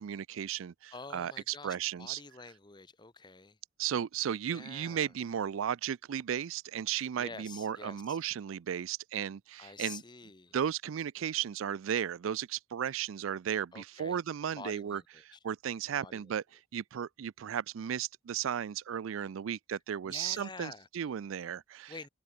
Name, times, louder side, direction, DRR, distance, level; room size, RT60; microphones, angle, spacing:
voice 1, 0.0-2.2 3.8-10.0 10.5-15.0 15.3-16.4 16.7-22.1, right 9 dB, 75° right, 0.4 m, -35 dB
voice 2, 0.9-3.6 4.4-5.1 7.2-8.2 9.6-10.6 13.7-14.2 14.6-15.4 16.0-16.4 20.0-20.9 21.9-22.1, left 4 dB, 20° left, 1.0 m, -48 dB
open air
head